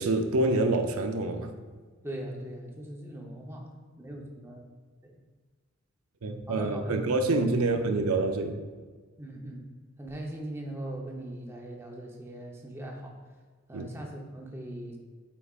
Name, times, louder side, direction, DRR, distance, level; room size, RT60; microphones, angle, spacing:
voice 1, 0.0-1.5 6.2-8.6 13.7-13.9, right 2 dB, 90° right, 6 dB, 0.6 m, -27 dB
voice 2, 2.0-4.7 5.0-5.1 6.5-7.0 7.3-7.7 9.2-9.7 10.0-13.2 13.7-15.0, right 1 dB, 10° right, 0 dB, 0.7 m, -40 dB
8.4 x 4.8 x 2.4 m, 1.5 s
head